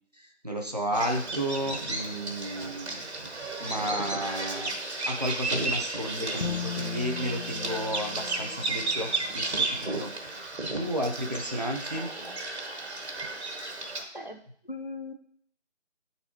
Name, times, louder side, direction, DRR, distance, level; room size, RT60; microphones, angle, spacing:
voice 1, 0.2-4.7 5.1-12.1, equal, 35° right, 2 dB, 0.6 m, -33 dB
Bird vocalization bird call bird song, 0.9-14.0, right 2 dB, 65° right, 1.5 m, -33 dB
Bowed string instrument, 6.4-9.5, left 8 dB, 85° left, 1.1 m, -38 dB
voice 2, 11.9-12.4 14.1-14.4 14.7-15.1, left 2 dB, 45° left, 5 dB, 0.4 m, -40 dB
9.4 x 4.0 x 3.0 m, 0.62 s
figure-of-eight pair, 165°, 35 cm